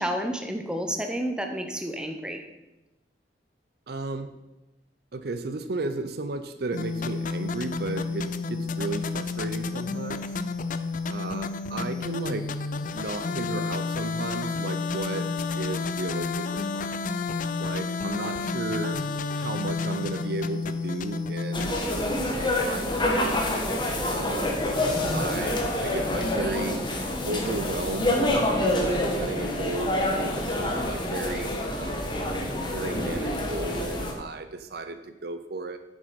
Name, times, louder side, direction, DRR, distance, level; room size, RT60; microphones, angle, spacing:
voice 1, 0.0-2.4, equal, 5° right, 4 dB, 0.9 m, -30 dB
voice 2, 3.9-4.3 5.1-10.2 11.1-12.4 12.9-15.3 15.6-16.9 17.6-19.0 19.4-21.8 22.3-23.4 24.1-24.6 25.1-26.8 27.3-32.1 32.7-35.8, right 3 dB, 60° right, 10 dB, 0.6 m, -34 dB
sound 1, 6.7-21.7, left 4 dB, 45° left, 0.5 m, -30 dB
sound 2, 21.5-34.1, left 1 dB, 25° left, 1.4 m, -27 dB
8.9 x 7.3 x 5.3 m, 1.0 s
head